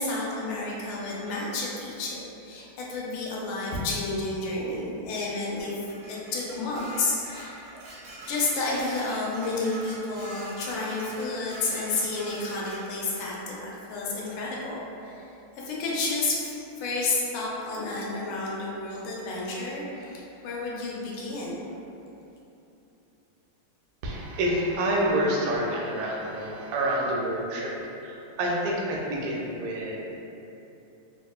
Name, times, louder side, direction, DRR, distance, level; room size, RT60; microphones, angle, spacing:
voice 1, 0.0-5.7 6.1-7.6 8.3-15.3 15.6-21.5, left 3 dB, 90° left, -4 dB, 1.5 m, -31 dB
Dishes pots and pans, 5.6-13.3, right 2 dB, 65° right, 1.1 m, -44 dB
voice 2, 24.0-27.7 28.0-30.0, right 1 dB, 85° right, -3 dB, 1.4 m, -28 dB
3.6 x 2.8 x 2.3 m, 2.9 s
omnidirectional pair, 2.3 m